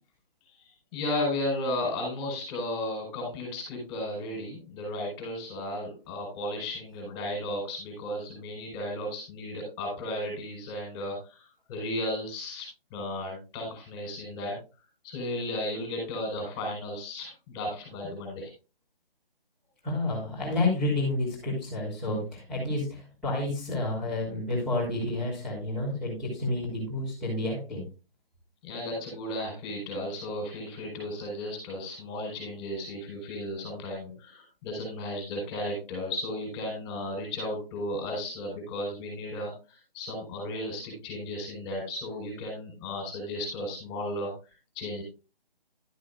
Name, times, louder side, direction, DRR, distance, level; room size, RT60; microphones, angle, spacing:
voice 1, 0.6-14.6 15.0-18.5 28.6-45.0, left 1 dB, 20° left, 1 dB, 4.8 m, -34 dB
voice 2, 19.8-27.9, left 2 dB, ahead, -9 dB, 3.5 m, -30 dB
12.0 x 9.8 x 2.4 m, 0.30 s
figure-of-eight pair, 155°, 29 cm